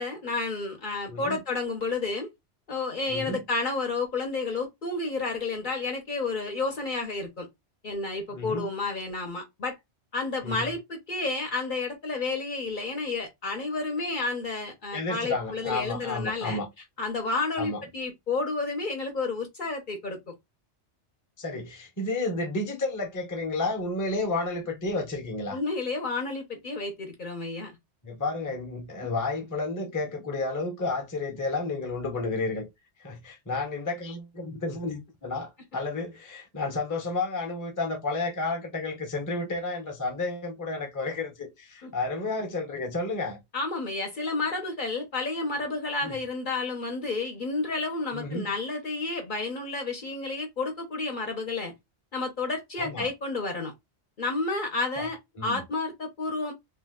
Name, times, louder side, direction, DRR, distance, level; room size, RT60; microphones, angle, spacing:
voice 1, 0.0-2.3 2.7-7.5 7.8-9.7 10.1-16.6 17.0-20.2 25.5-27.8 41.8-41.9 43.5-51.7 52.1-53.7 54.2-56.5, left 3 dB, 50° left, 0.8 m, -31 dB
voice 2, 1.1-1.4 3.1-3.4 8.3-8.7 10.4-10.7 14.9-16.7 17.6-17.8 21.4-25.6 28.0-32.7 33.0-43.4 46.0-46.2 48.1-48.5 52.8-53.1 55.0-55.1 55.4-55.6, left 3 dB, 20° left, 0.6 m, -31 dB
2.8 x 2.2 x 3.4 m
omnidirectional pair, 1.2 m